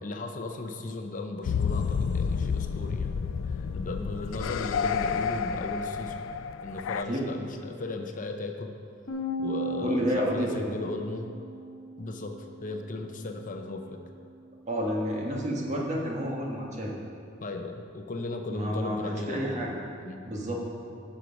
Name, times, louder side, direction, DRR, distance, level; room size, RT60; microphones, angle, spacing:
voice 1, 0.0-3.1 3.5-6.2 6.6-8.7 9.4-11.3 12.0-14.0 17.4-19.8 20.0-20.2, left 2 dB, 45° left, 5 dB, 0.6 m, -36 dB
sound 1, 1.4-7.0, left 6 dB, 85° left, 0.3 m, -30 dB
Bass guitar, 9.1-15.3, equal, 70° left, 1.4 m, -39 dB
voice 2, 9.8-10.7 14.7-16.9 18.5-19.8 20.2-20.6, equal, 40° right, -2 dB, 1.5 m, -30 dB
10.5 x 6.4 x 5.2 m, 2.4 s
head